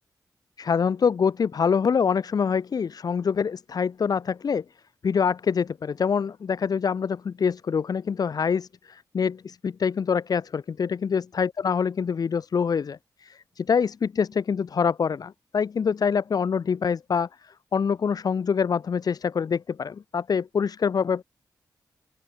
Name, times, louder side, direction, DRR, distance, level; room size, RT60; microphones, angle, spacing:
voice 1, 0.6-4.6 5.0-21.2, left 6 dB, 65° left, 1.2 m, -25 dB
open air
cardioid pair, 60°, 7 cm